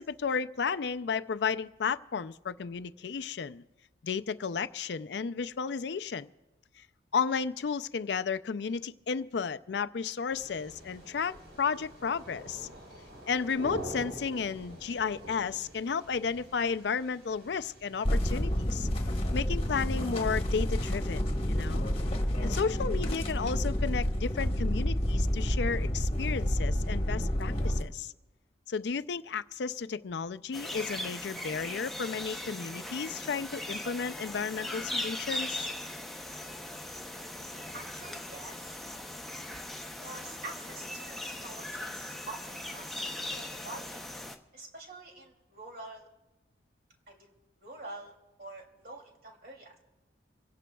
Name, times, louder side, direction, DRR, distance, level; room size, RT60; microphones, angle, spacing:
voice 1, 0.0-3.6 4.0-6.3 6.8-6.9 7.1-12.7 13.3-18.9 19.3-21.9 22.4-28.1 28.7-35.7, left 5 dB, 70° left, 12 dB, 0.4 m, -33 dB
sound 1, 10.3-20.3, equal, 70° right, 4.7 m, -47 dB
sound 2, 18.0-27.8, equal, 35° left, 1.2 m, -29 dB
sound 3, 30.5-44.4, left 1 dB, ahead, 0.7 m, -39 dB
voice 2, 37.5-38.8 40.0-44.0 44.5-46.1 47.1-47.3 47.6-48.1 48.4-49.8, right 2 dB, 55° right, 1 dB, 2.8 m, -46 dB
25.5 x 17.0 x 2.3 m, 1.0 s
head